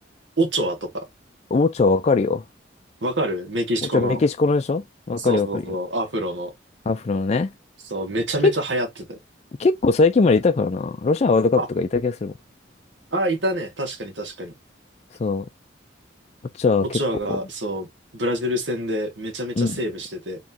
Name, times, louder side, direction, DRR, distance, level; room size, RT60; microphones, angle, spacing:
voice 1, 0.4-1.0 3.0-4.2 5.2-6.5 7.9-9.2 11.6-11.7 13.1-14.5 16.9-20.4, right 1 dB, 75° right, 1.7 m, -26 dB
voice 2, 1.5-2.4 3.9-5.6 6.9-7.5 8.4-8.5 9.6-12.3 15.2-15.5 16.6-17.0 17.3-17.4 19.6-19.8, left 3 dB, 35° left, 0.4 m, -20 dB
4.2 x 3.0 x 2.7 m
head